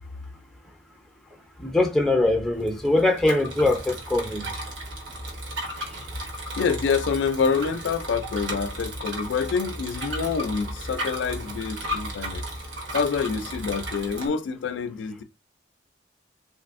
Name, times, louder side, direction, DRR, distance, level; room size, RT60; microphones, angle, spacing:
voice 1, 1.6-4.5, left 2 dB, ahead, 0.5 m, -22 dB
Bicycle, 2.5-14.3, equal, 70° right, 1.0 m, -35 dB
voice 2, 6.6-12.4 12.9-15.2, left 5 dB, 65° left, 0.3 m, -27 dB
3.3 x 2.5 x 2.4 m
head